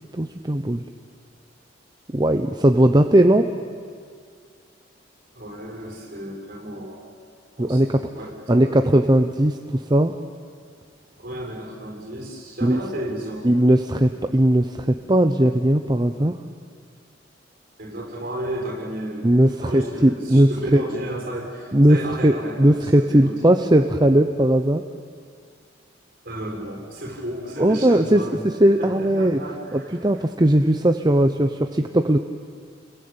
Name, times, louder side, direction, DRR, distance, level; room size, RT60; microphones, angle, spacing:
voice 1, 0.1-0.8 2.1-3.5 7.6-8.1 8.5-10.1 12.6-12.8 13.4-16.3 19.2-20.8 21.7-22.0 22.2-24.8 27.6-28.2 28.6-29.4 29.7-32.2, right 1 dB, 20° right, 6 dB, 0.8 m, -18 dB
voice 2, 5.3-7.2 7.6-8.9 11.2-13.5 17.8-19.3 19.6-23.6 26.2-28.5 28.8-30.0, right 1 dB, 50° right, 2 dB, 6.9 m, -33 dB
29.5 x 22.0 x 8.9 m, 2.1 s
head